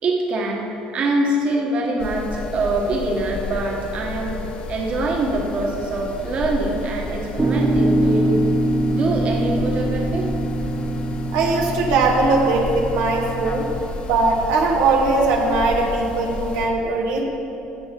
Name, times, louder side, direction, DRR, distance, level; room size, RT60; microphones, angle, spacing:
voice 1, 0.0-8.4 8.8-10.3, right 2 dB, 45° right, 0 dB, 1.5 m, -24 dB
sound 1, 2.0-16.7, left 3 dB, 45° left, 1.2 m, -32 dB
sound 2, 7.4-13.8, right 1 dB, 15° right, 1.0 m, -23 dB
voice 2, 11.3-13.7 14.0-17.2, right 3 dB, 85° right, 0 dB, 1.5 m, -20 dB
16.0 x 6.0 x 5.3 m, 3.0 s
cardioid pair, 130°, 3 cm